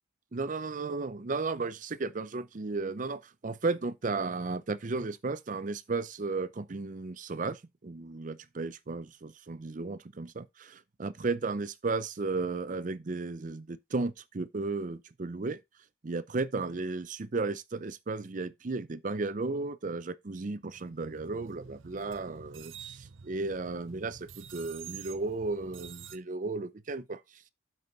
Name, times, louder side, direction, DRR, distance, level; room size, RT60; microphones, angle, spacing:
voice 1, 0.3-15.6 16.0-27.2, right 3 dB, 40° right, 0.5 m, -34 dB
sound 1, 20.6-26.2, right 8 dB, 80° right, 0.7 m, -48 dB
8.0 x 5.5 x 4.0 m
head